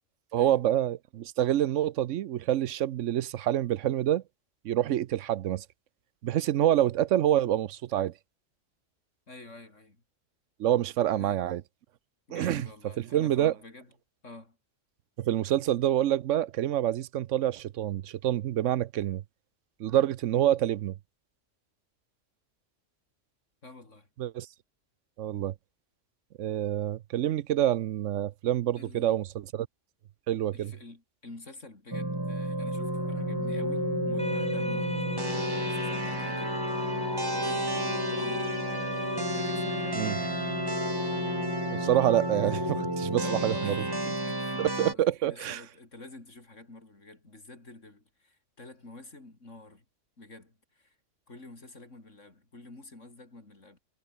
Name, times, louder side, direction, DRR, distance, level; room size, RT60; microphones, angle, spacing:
voice 1, 0.3-4.2 4.6-5.6 6.2-8.1 10.6-11.6 12.3-12.7 13.1-13.5 15.2-19.2 19.8-20.9 24.2-24.5 25.2-25.5 26.4-29.7 30.3-30.7 39.9-40.2 41.7-43.7 44.6-45.6, right 12 dB, 75° right, 1.0 m, -27 dB
voice 2, 9.3-10.0 11.1-11.4 12.3-13.9 14.2-14.6 23.6-24.1 26.7-26.8 28.7-29.1 30.5-34.9 35.6-36.7 37.3-38.7 39.3-40.5 42.5-42.6 43.1-49.8 50.2-50.9 51.3-53.8, left 2 dB, 70° left, 5.0 m, -48 dB
sound 1, 31.9-44.9, right 1 dB, 15° right, 2.3 m, -31 dB
Organ, 32.7-43.7, left 7 dB, 45° left, 0.6 m, -37 dB
sound 2, 34.2-39.2, left 1 dB, 5° left, 1.1 m, -40 dB
omnidirectional pair, 1.3 m